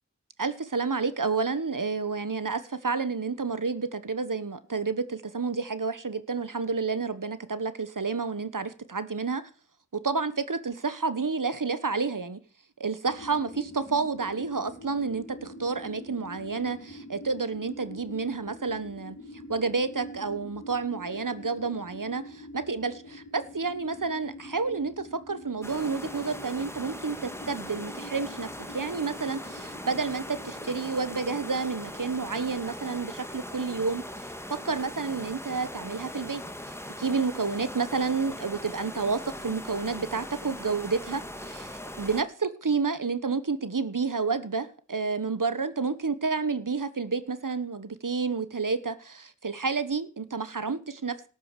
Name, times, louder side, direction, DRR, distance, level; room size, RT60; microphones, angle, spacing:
voice 1, 0.4-9.4 9.9-12.4 12.8-19.2 19.5-28.5 28.7-36.4 37.0-51.2, right 4 dB, 80° right, 14 dB, 1.2 m, -30 dB
sound 1, 13.1-32.5, equal, 60° left, 3.7 m, -45 dB
sound 2, 25.6-42.2, left 1 dB, 10° left, 1.8 m, -40 dB
13.0 x 9.4 x 6.7 m, 0.39 s
wide cardioid pair, 40°, 31 cm